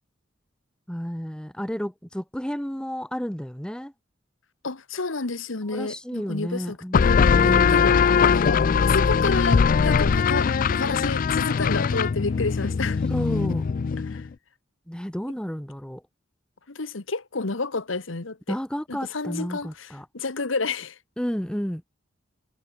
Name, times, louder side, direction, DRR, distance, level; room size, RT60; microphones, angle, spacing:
voice 1, 0.9-3.9 5.7-7.9 13.1-13.7 14.9-16.0 18.5-20.1 21.2-21.8, equal, 5° left, 1.2 m, -31 dB
voice 2, 4.6-6.8 7.0-8.0 8.3-13.0 14.1-14.3 16.7-18.4 18.9-21.0, left 3 dB, 85° left, 1.4 m, -30 dB
sound 1, 6.9-14.3, left 6 dB, 45° left, 0.4 m, -21 dB
head